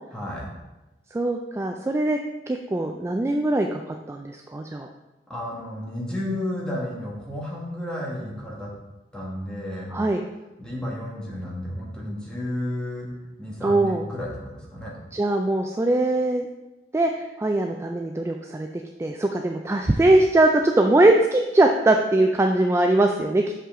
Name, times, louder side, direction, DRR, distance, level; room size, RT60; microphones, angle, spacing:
voice 1, 0.1-0.5 5.3-8.7 9.1-9.9 10.6-13.1 13.4-15.0, left 1 dB, 5° left, -4 dB, 1.5 m, -32 dB
voice 2, 1.1-2.2 2.5-3.8 4.1-4.9 9.9-10.2 13.6-14.0 15.1-16.5 16.9-18.7 19.0-23.4, right 2 dB, 15° right, 3 dB, 0.3 m, -21 dB
6.3 x 5.6 x 3.7 m, 1.0 s
head